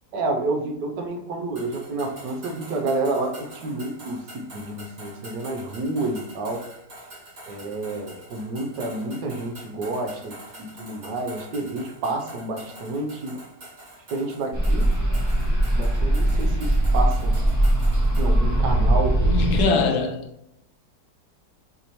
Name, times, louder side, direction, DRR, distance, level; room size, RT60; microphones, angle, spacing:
voice 1, 0.1-6.7 7.5-13.4 14.1-14.9 15.7-17.4 18.2-19.3 19.7-19.9, right 2 dB, 80° right, 1.4 m, -29 dB
sound 1, 1.6-18.3, right 1 dB, 55° right, 2.3 m, -45 dB
sound 2, 14.5-19.7, right 1 dB, 25° right, 0.4 m, -20 dB
voice 2, 19.3-20.2, left 4 dB, 70° left, 1.2 m, -22 dB
6.5 x 2.7 x 3.0 m
omnidirectional pair, 1.9 m